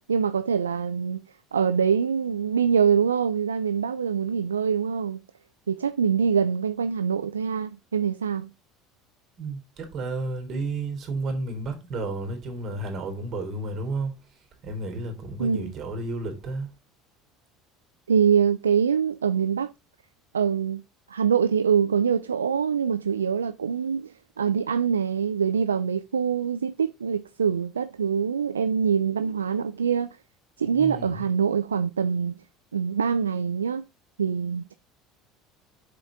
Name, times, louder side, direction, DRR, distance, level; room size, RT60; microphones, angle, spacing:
voice 1, 0.1-1.2 1.5-5.2 5.7-8.5 15.4-15.7 18.1-19.7 20.3-20.8 21.1-30.1 30.6-32.3 32.7-33.8 34.2-34.7, right 7 dB, 85° right, 0.4 m, -24 dB
voice 2, 9.4-16.7 30.7-31.2, right 2 dB, 45° right, 3.5 m, -32 dB
7.8 x 6.6 x 3.7 m
figure-of-eight pair, 70°, 0 cm